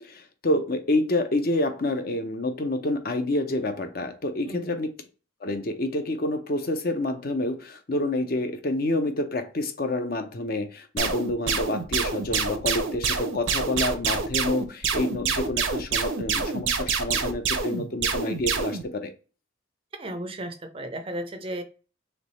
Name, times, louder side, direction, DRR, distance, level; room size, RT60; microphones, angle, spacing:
voice 1, 0.0-4.9 5.4-19.1, left 2 dB, 45° left, 0.6 m, -28 dB
voice 2, 4.5-4.8 20.0-21.6, right 1 dB, 25° right, 0.5 m, -34 dB
sound 1, 11.0-18.8, right 5 dB, 80° right, 0.7 m, -26 dB
3.3 x 3.0 x 4.0 m
head